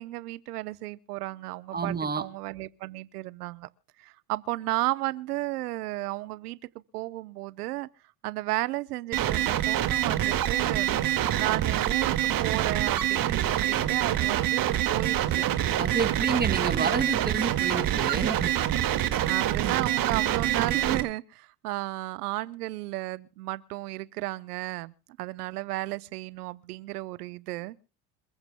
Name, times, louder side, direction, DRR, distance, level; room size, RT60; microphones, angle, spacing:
voice 1, 0.0-3.7 4.0-6.6 6.9-7.9 8.2-12.1 12.4-15.5 19.3-27.8, right 18 dB, 85° right, 0.9 m, -33 dB
voice 2, 1.7-2.2 15.8-18.5 19.6-19.8, right 5 dB, 20° right, 2.4 m, -29 dB
sound 1, 9.1-21.0, right 12 dB, 50° right, 2.0 m, -26 dB
27.5 x 15.0 x 2.2 m
hypercardioid pair, 85°, 45 cm